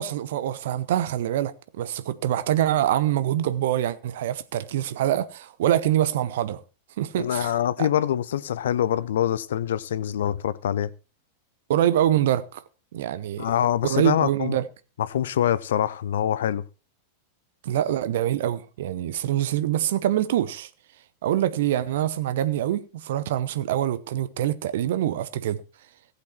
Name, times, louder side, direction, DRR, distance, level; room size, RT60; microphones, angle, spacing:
voice 1, 0.0-6.6 7.0-7.5 7.8-7.9 11.7-12.6 12.9-13.5 13.8-14.7 17.6-20.7 21.2-25.6, right 12 dB, 55° right, 0.8 m, -25 dB
voice 2, 7.2-10.9 13.4-14.6 15.0-16.6, left 10 dB, 60° left, 0.6 m, -25 dB
15.0 x 8.3 x 4.3 m
figure-of-eight pair, 90°, 0 cm